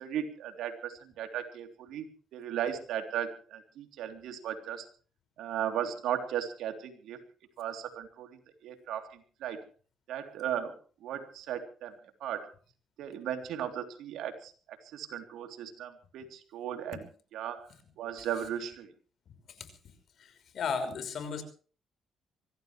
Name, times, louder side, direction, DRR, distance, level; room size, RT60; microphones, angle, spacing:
voice 1, 0.0-4.9 5.4-7.2 7.6-8.3 8.6-9.6 10.1-10.7 11.0-11.9 12.2-12.5 13.0-17.1 17.3-17.7 18.0-18.9, right 9 dB, 85° right, 6 dB, 3.4 m, -36 dB
voice 2, 20.2-21.4, left 5 dB, 65° left, 8 dB, 5.7 m, -34 dB
24.5 x 16.5 x 3.3 m, 0.39 s
cardioid pair, 90°, 0 cm